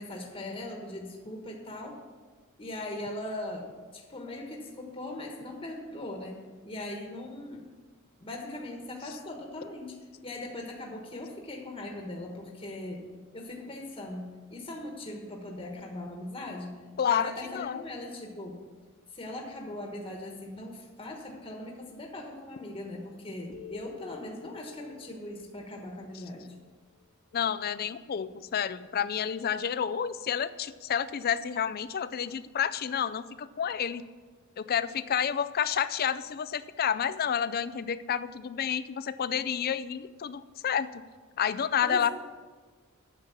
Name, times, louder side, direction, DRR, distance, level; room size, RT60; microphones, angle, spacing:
voice 1, 0.0-2.0 2.6-3.7 3.9-6.4 6.6-7.8 8.2-10.0 10.2-13.0 13.3-16.8 17.1-18.6 19.1-26.5 41.8-42.1, left 1 dB, 25° left, 0 dB, 1.3 m, -40 dB
voice 2, 17.0-17.8 27.3-34.0 34.6-41.0 41.4-42.1, left 8 dB, 45° left, 15 dB, 0.4 m, -30 dB
sound 1, 23.5-27.0, left 10 dB, 70° left, 1.0 m, -50 dB
9.2 x 6.9 x 7.2 m, 1.4 s
head